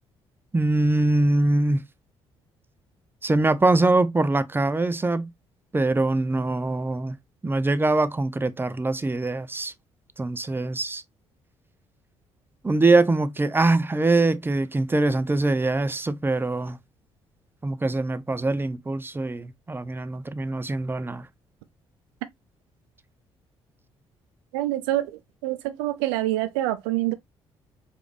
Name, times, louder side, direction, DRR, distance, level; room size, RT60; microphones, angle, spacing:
voice 1, 0.5-1.8 3.2-5.3 5.7-7.2 7.4-9.7 10.2-11.0 12.6-16.8 17.6-21.3, right 2 dB, 15° right, 0.5 m, -23 dB
voice 2, 24.5-27.1, right 15 dB, 70° right, 0.6 m, -26 dB
4.8 x 2.5 x 3.3 m
figure-of-eight pair, 45°, 14 cm